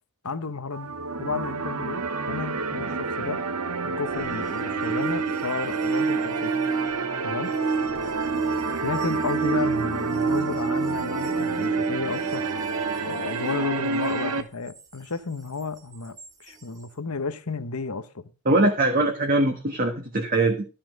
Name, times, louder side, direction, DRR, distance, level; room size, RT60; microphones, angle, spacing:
voice 1, 0.2-0.9 1.2-3.4 3.8-6.5 7.2-7.5 8.8-12.5 13.0-18.3, left 4 dB, 80° left, 1.1 m, -32 dB
sound 1, 0.7-14.4, right 4 dB, 90° right, 1.2 m, -30 dB
sound 2, 4.1-13.9 16.2-16.3, right 4 dB, 15° right, 0.9 m, -29 dB
voice 2, 18.4-20.7, right 2 dB, 40° right, 1.5 m, -22 dB
13.0 x 5.7 x 6.4 m
head